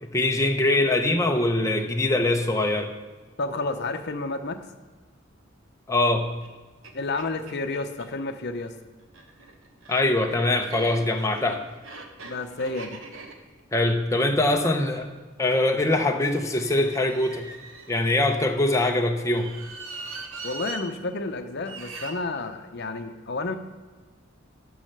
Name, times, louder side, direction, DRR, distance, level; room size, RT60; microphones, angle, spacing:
voice 1, 0.0-2.9 5.9-6.3 9.9-11.6 13.7-15.1 15.4-17.5 17.9-19.5, left 2 dB, 15° left, 2 dB, 0.7 m, -23 dB
voice 2, 3.4-4.6 6.9-8.7 12.2-13.0 20.4-23.6, left 3 dB, 55° left, 7 dB, 0.7 m, -30 dB
sound 1, 6.4-6.5 6.8-6.9 7.2-8.1 9.0-15.2 16.3-18.6 19.2-20.8 21.6-22.1, right 3 dB, 80° right, 1.1 m, -42 dB
10.5 x 5.6 x 6.6 m, 1.3 s
head